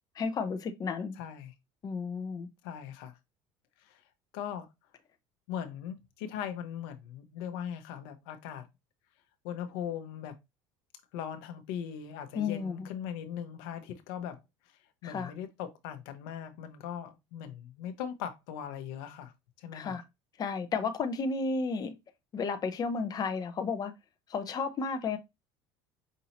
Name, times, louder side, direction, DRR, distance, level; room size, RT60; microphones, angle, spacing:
voice 1, 0.2-1.2 1.8-2.5 12.3-12.9 15.0-15.3 19.7-20.0 20.4-22.0 22.3-23.9 24.3-25.2, left 4 dB, 35° left, 0.7 m, -32 dB
voice 2, 1.2-1.5 2.6-3.1 3.8-4.0 4.3-4.7 5.5-8.7 9.4-10.3 11.1-14.4 15.0-19.3 19.6-20.0, left 9 dB, 85° left, 0.9 m, -39 dB
5.4 x 2.7 x 2.9 m
supercardioid pair, 110°, 12 cm